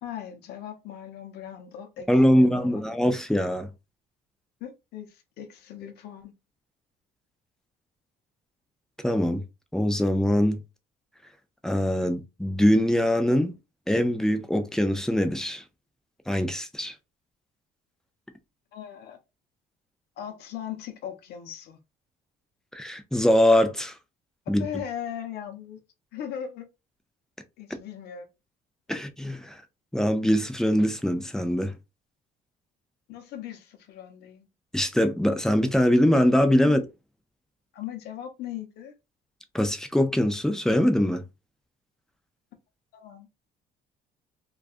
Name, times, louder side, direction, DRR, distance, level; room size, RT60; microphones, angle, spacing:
voice 1, 0.0-2.8 4.6-6.3 18.7-19.2 20.2-21.8 24.5-25.8 26.1-26.7 27.6-28.3 28.9-29.0 33.1-34.5 36.6-36.8 37.7-38.9 42.9-43.3, left 9 dB, 75° left, 0.6 m, -38 dB
voice 2, 2.1-3.7 9.0-9.4 9.7-10.6 11.6-13.6 13.9-15.6 16.3-16.9 22.7-23.9 24.5-24.7 28.9-29.6 29.9-31.7 34.7-36.8 39.5-41.2, equal, 5° left, 0.4 m, -23 dB
2.3 x 2.3 x 2.5 m
cardioid pair, 110°, 17 cm